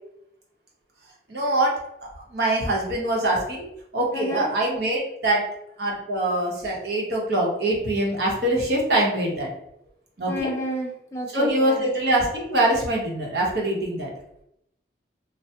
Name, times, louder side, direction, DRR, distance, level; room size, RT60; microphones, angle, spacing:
voice 1, 1.3-1.8 2.3-5.5 5.8-9.5 10.2-10.5 11.3-14.1, right 1 dB, 65° right, -3 dB, 0.9 m, -24 dB
voice 2, 4.1-4.5 10.3-11.8, equal, 15° left, -1 dB, 0.5 m, -30 dB
3.2 x 2.1 x 2.8 m, 0.78 s
head